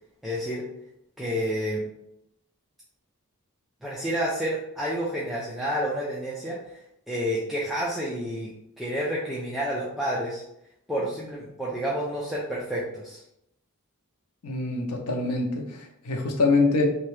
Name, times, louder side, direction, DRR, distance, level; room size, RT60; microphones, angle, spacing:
voice 1, 0.2-0.6 1.2-1.8 3.8-6.8 7.1-8.5 8.8-10.4 10.9-13.2, equal, ahead, -6 dB, 0.3 m, -29 dB
voice 2, 14.4-16.8, left 3 dB, 85° left, 2 dB, 0.6 m, -25 dB
2.7 x 2.2 x 3.1 m, 0.79 s
head